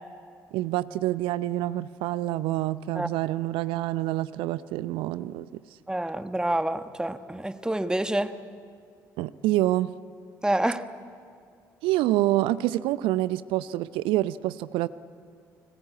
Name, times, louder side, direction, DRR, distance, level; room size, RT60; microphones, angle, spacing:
voice 1, 0.5-5.5 9.2-9.9 11.8-14.9, right 15 dB, 60° right, 17 dB, 0.6 m, -27 dB
voice 2, 5.9-8.3 10.4-10.8, right 1 dB, 10° right, 11 dB, 1.3 m, -27 dB
29.5 x 19.5 x 8.5 m, 2.2 s
figure-of-eight pair, 50°, 10 cm